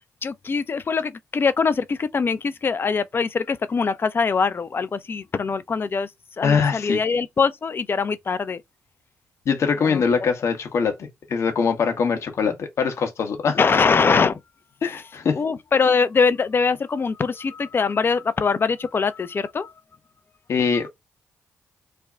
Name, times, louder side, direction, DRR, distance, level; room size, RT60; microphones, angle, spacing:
voice 1, 0.2-6.1 6.4-8.6 9.8-10.3 13.5-14.4 15.3-19.7, left 5 dB, 45° left, 0.6 m, -23 dB
voice 2, 6.4-7.0 9.5-13.6 14.8-15.4 20.5-20.9, left 6 dB, 65° left, 1.0 m, -22 dB
3.4 x 2.2 x 3.6 m
supercardioid pair, 50°, 5 cm